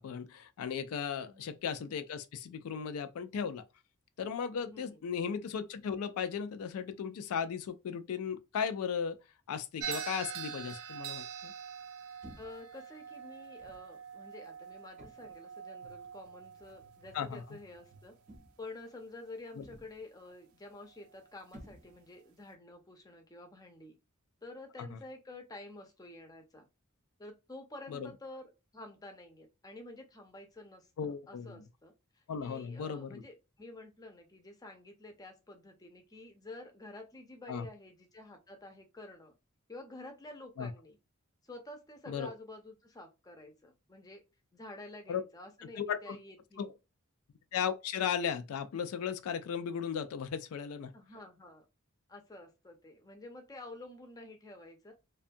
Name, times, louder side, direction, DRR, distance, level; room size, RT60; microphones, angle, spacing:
voice 1, 0.0-3.6 4.2-9.2 9.5-11.5 17.1-17.4 19.6-19.7 24.8-24.9 27.9-28.1 31.0-31.6 32.3-33.2 37.5-37.7 40.6-40.7 42.1-42.3 45.1-45.2 45.8-46.2 46.6-46.7 47.5-50.9, left 7 dB, 90° left, 0.3 m, -36 dB
voice 2, 1.2-1.7 4.7-5.0 12.4-18.1 18.6-24.0 24.4-26.6 27.2-39.3 39.7-41.0 41.4-44.2 44.5-46.6 50.9-51.6 52.1-54.9, left 2 dB, 15° left, 0.5 m, -50 dB
sound 1, 9.8-18.2, right 8 dB, 75° right, 0.4 m, -44 dB
sound 2, 12.2-12.7 13.6-13.9 15.0-15.5 16.6-16.8 18.3-18.8 19.6-20.1 21.5-22.2, equal, 35° right, 0.6 m, -54 dB
2.5 x 2.3 x 2.5 m
head